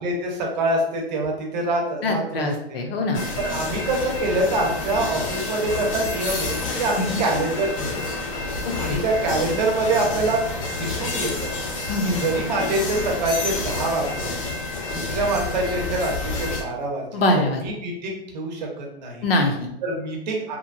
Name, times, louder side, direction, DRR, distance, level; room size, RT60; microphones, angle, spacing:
voice 1, 0.0-2.8 3.4-8.1 8.8-10.4 10.8-11.5 12.0-14.3 14.9-17.2 17.6-19.2 19.8-20.6, right 2 dB, 45° right, 0 dB, 0.8 m, -25 dB
voice 2, 2.0-3.2 7.0-7.2 8.9-9.0 11.9-12.2 17.1-17.6 19.2-19.7, left 2 dB, 65° left, 3 dB, 0.7 m, -23 dB
sound 1, 3.1-16.6, left 3 dB, 35° left, 0.5 m, -29 dB
2.9 x 2.2 x 2.5 m, 0.78 s
hypercardioid pair, 155°, 32 cm